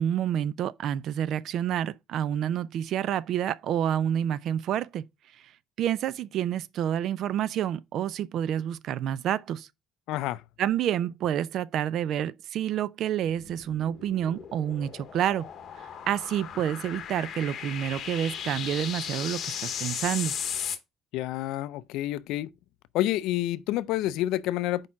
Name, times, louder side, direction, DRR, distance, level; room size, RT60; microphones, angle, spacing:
voice 1, 0.0-5.1 5.8-9.7 10.6-15.5 16.1-20.3, right 10 dB, 55° right, 0.3 m, -28 dB
voice 2, 10.1-10.4 21.1-22.5 22.9-24.9, left 14 dB, 85° left, 0.3 m, -28 dB
sound 1, 13.2-20.8, left 8 dB, 45° left, 0.9 m, -36 dB
4.8 x 4.3 x 5.6 m
cardioid pair, 165°, 0 cm